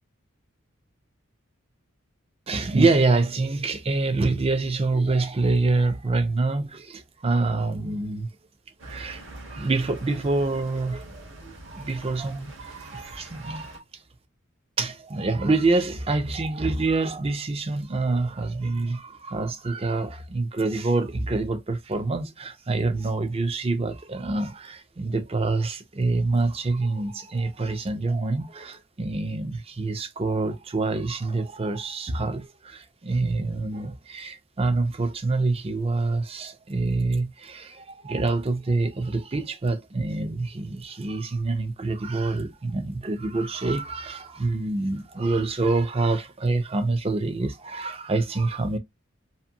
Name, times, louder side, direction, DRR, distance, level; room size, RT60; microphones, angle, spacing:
voice 1, 2.5-8.3 8.8-9.2 9.5-13.8 14.8-48.8, right 3 dB, 30° right, 0.5 m, -26 dB
sound 1, 8.8-13.8, right 1 dB, 60° right, 1.0 m, -44 dB
2.8 x 2.5 x 2.5 m
head